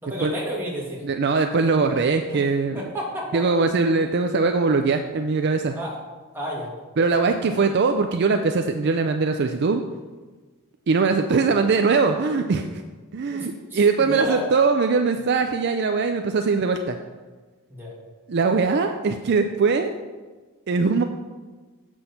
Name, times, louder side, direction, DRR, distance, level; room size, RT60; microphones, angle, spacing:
voice 1, 0.0-1.0 2.3-2.4 2.7-3.7 5.7-6.0 6.3-6.7 13.3-14.4 17.7-17.9, equal, 10° right, -5 dB, 2.0 m, -32 dB
voice 2, 1.0-2.8 3.3-5.8 7.0-9.8 10.9-12.8 13.1-17.0 18.3-20.0 20.7-21.0, right 4 dB, 50° right, 6 dB, 0.4 m, -21 dB
7.8 x 6.2 x 5.7 m, 1.3 s
head